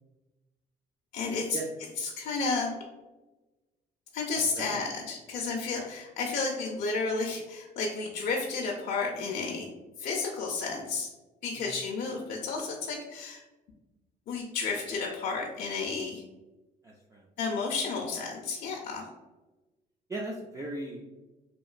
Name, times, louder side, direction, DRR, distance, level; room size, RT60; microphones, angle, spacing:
voice 1, 1.1-1.6 2.0-2.8 4.1-9.7 10.0-11.1 11.4-13.4 14.3-16.2 17.4-19.1, left 4 dB, 60° left, -1 dB, 0.5 m, -32 dB
voice 2, 16.8-17.2 18.8-19.0 20.1-21.1, right 2 dB, 20° right, -2 dB, 0.3 m, -38 dB
2.9 x 2.5 x 2.4 m, 1.1 s
cardioid pair, 110°, 17 cm